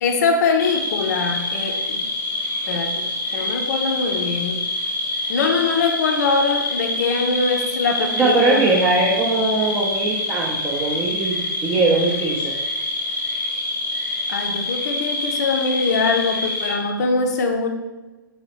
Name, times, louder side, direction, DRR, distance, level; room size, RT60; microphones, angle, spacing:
voice 1, 0.0-2.1 2.7-4.6 5.3-8.8 14.3-17.7, left 4 dB, 50° left, 4 dB, 0.5 m, -22 dB
sound 1, 0.6-16.7, left 2 dB, 25° left, 0.8 m, -26 dB
voice 2, 8.1-12.5, right 3 dB, 15° right, -4 dB, 0.5 m, -21 dB
4.0 x 2.7 x 2.9 m, 1.2 s
figure-of-eight pair, 120°, 11 cm